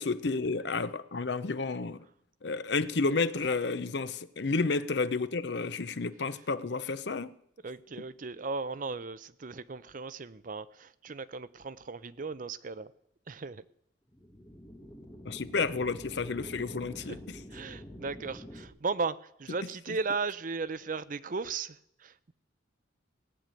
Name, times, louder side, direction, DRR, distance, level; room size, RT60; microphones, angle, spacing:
voice 1, 0.0-2.1 2.4-7.3 15.2-17.4 19.9-20.0, left 4 dB, 60° left, 0.7 m, -31 dB
voice 2, 7.6-12.9 13.3-13.6 17.1-17.2 17.5-22.3, right 4 dB, 45° right, 0.6 m, -36 dB
sound 1, 14.1-18.7, equal, 15° left, 1.7 m, -46 dB
18.0 x 6.7 x 9.0 m
head